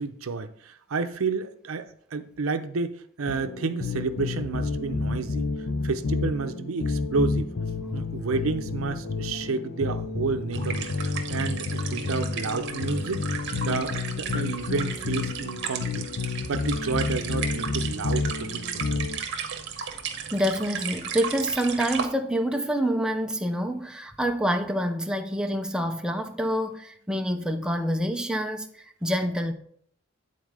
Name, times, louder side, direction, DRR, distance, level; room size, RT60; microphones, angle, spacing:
voice 1, 0.0-5.5 5.8-7.5 7.9-13.3 13.6-19.1, right 4 dB, 85° right, 0.6 m, -31 dB
sound 1, 3.3-19.2, left 3 dB, 80° left, 0.7 m, -30 dB
sound 2, 10.5-22.0, right 7 dB, 60° right, 0.9 m, -35 dB
voice 2, 20.3-29.5, equal, 5° right, 0.5 m, -27 dB
9.2 x 4.1 x 4.8 m
head